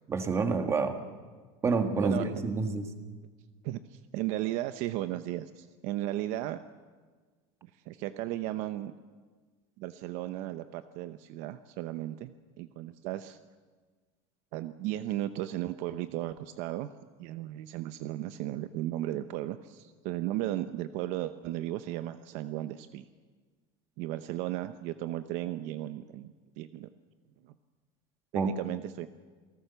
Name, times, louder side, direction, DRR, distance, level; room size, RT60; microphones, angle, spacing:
voice 1, 0.1-1.0 1.6-2.9 28.3-28.5, right 4 dB, 20° right, 7 dB, 1.6 m, -28 dB
voice 2, 3.6-6.6 7.6-8.9 9.8-12.3 12.6-13.4 14.5-16.9 17.2-23.1 24.0-26.9 27.4-27.5 28.3-29.1, right 14 dB, 50° right, 11 dB, 0.8 m, -35 dB
28.0 x 18.0 x 6.9 m, 1.4 s
cardioid pair, 170°, 15 cm